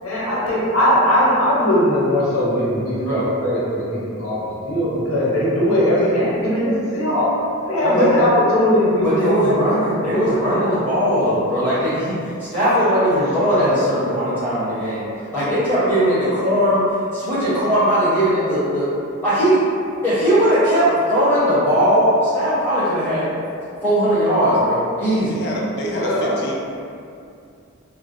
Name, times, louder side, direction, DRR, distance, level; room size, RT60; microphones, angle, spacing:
voice 1, 0.0-4.4 4.6-7.3 7.7-9.5 10.1-10.7 25.8-26.4, equal, 75° left, -8 dB, 0.7 m, -19 dB
voice 2, 7.8-8.2 9.0-15.1 15.3-16.8 17.1-18.8 19.2-19.6 20.0-23.3 23.8-25.4, equal, 10° left, -13 dB, 0.7 m, -19 dB
voice 3, 25.3-26.6, equal, 50° left, -3 dB, 0.3 m, -28 dB
2.4 x 2.0 x 2.4 m, 2.4 s
head